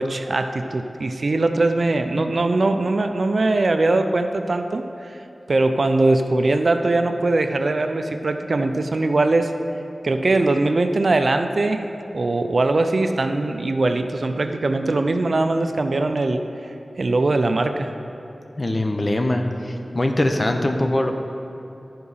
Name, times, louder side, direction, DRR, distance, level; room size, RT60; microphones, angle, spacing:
voice 1, 0.0-5.2 5.5-9.5 10.0-11.8 12.1-16.4 17.0-17.9, right 2 dB, 65° right, 7 dB, 0.5 m, -21 dB
voice 2, 18.6-21.1, left 1 dB, 40° left, 4 dB, 0.8 m, -22 dB
11.5 x 4.8 x 5.5 m, 2.9 s
wide cardioid pair, 60°, 0 cm